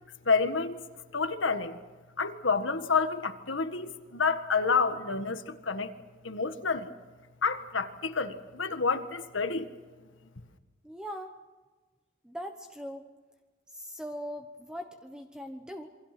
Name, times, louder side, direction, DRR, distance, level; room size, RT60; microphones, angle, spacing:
voice 1, 0.2-0.9 1.1-1.8 2.2-5.9 6.2-6.9 7.4-9.7, left 4 dB, 80° left, 1.7 m, -29 dB
voice 2, 10.8-11.4 12.2-13.1 13.7-15.9, equal, 5° right, 1.1 m, -40 dB
27.5 x 24.5 x 6.1 m
head